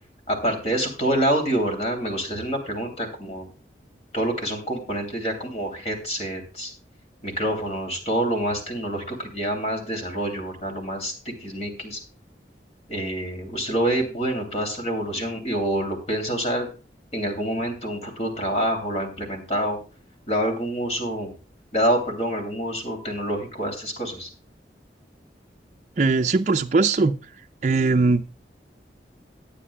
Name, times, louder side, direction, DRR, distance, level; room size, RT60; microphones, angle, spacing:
voice 1, 0.3-3.5 4.1-6.7 7.2-12.0 12.9-16.7 17.1-19.8 20.3-21.3 21.7-24.3, right 1 dB, 35° left, 3 dB, 2.7 m, -27 dB
voice 2, 26.0-27.2 27.6-28.2, right 3 dB, 40° right, 5 dB, 0.4 m, -20 dB
19.5 x 8.6 x 2.2 m, 0.34 s
head